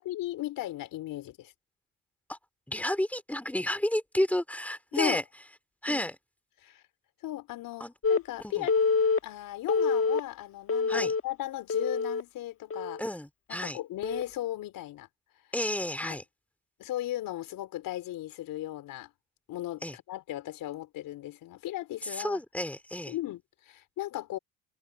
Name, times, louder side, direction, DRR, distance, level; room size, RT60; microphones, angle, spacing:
voice 1, 0.0-1.5 4.9-5.2 5.9-6.1 6.6-6.8 7.2-8.7 9.2-13.0 13.5-15.1 16.0-16.2 16.8-19.1 19.5-22.4 23.1-24.4, left 14 dB, 70° left, 4.3 m, -37 dB
voice 2, 2.7-5.2 5.8-6.1 7.8-7.9 8.4-8.7 10.9-11.1 13.0-13.8 15.5-16.2 19.8-20.0 22.0-23.1, left 1 dB, 5° left, 2.9 m, -31 dB
Telephone, 8.0-8.2 8.7-9.2 9.7-10.2 10.7-11.2 11.7-12.2 12.7-13.0 14.0-14.2, left 4 dB, 40° left, 1.5 m, -26 dB
supercardioid pair, 60°, 35 cm